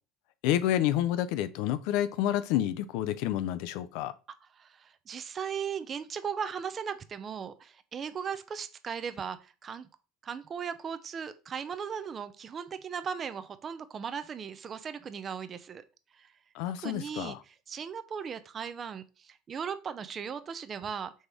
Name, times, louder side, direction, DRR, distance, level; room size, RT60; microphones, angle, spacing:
voice 1, 0.4-4.1 16.5-17.4, left 12 dB, 70° left, 0.4 m, -29 dB
voice 2, 4.6-9.9 10.2-15.8 16.1-16.3 16.8-21.1, right 7 dB, 35° right, 0.4 m, -37 dB
4.2 x 3.3 x 3.3 m
hypercardioid pair, 85°, 0 cm